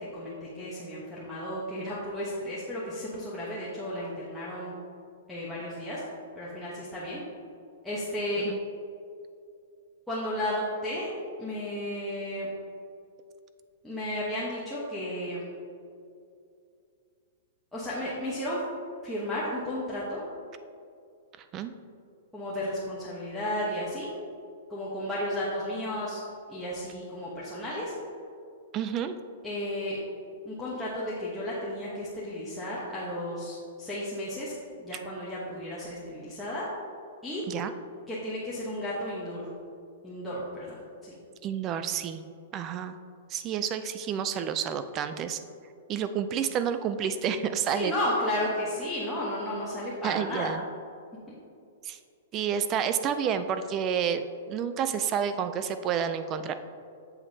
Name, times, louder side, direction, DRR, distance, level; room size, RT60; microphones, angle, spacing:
voice 1, 0.0-4.7 5.3-6.0 6.4-7.2 7.8-8.4 10.1-11.1 11.4-12.5 13.8-15.4 17.7-18.6 19.0-20.2 22.3-24.1 24.7-26.2 26.5-27.9 29.4-30.0 30.4-34.5 34.8-36.6 37.2-37.4 38.1-39.5 40.0-41.1 47.6-50.5, left 1 dB, ahead, -9 dB, 0.9 m, -33 dB
voice 2, 28.7-29.2 37.5-37.7 41.4-42.2 42.5-43.0 43.3-45.4 45.9-47.9 50.0-50.6 51.8-52.0 52.3-56.5, right 8 dB, 25° right, 10 dB, 0.3 m, -29 dB
8.1 x 7.1 x 2.7 m, 2.4 s
hypercardioid pair, 165°, 0 cm